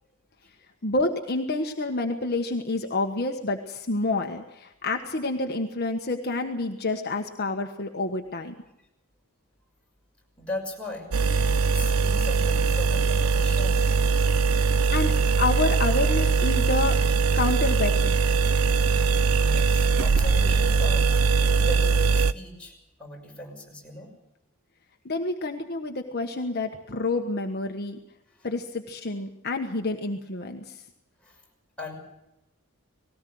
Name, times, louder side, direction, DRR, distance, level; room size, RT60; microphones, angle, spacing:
voice 1, 0.8-8.5 14.6-15.1 15.4-17.0 17.3-18.2 25.0-28.0 28.4-30.8, left 2 dB, 50° left, 3 dB, 1.4 m, -28 dB
voice 2, 10.4-11.1 11.7-13.9 19.4-21.2 21.6-22.7 23.0-24.1 28.3-28.5 31.2-31.4 31.8-32.0, left 1 dB, 5° left, -2 dB, 6.2 m, -38 dB
sound 1, 11.1-22.3, right 4 dB, 75° right, 0.7 m, -21 dB
19.5 x 18.0 x 7.8 m, 0.89 s
head